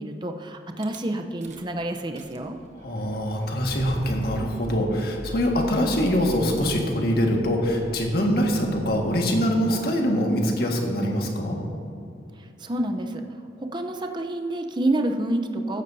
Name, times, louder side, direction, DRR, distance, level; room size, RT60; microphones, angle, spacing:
voice 1, 0.0-2.6 12.4-13.2 13.6-15.8, right 1 dB, 25° right, 5 dB, 0.7 m, -28 dB
Rattle / Car / Engine starting, 0.8-1.0 1.4-1.7 2.0-9.8, equal, 40° right, 1.1 m, -41 dB
voice 2, 2.8-11.6, equal, 60° left, 0 dB, 1.6 m, -24 dB
15.0 x 13.0 x 2.7 m, 2.5 s
head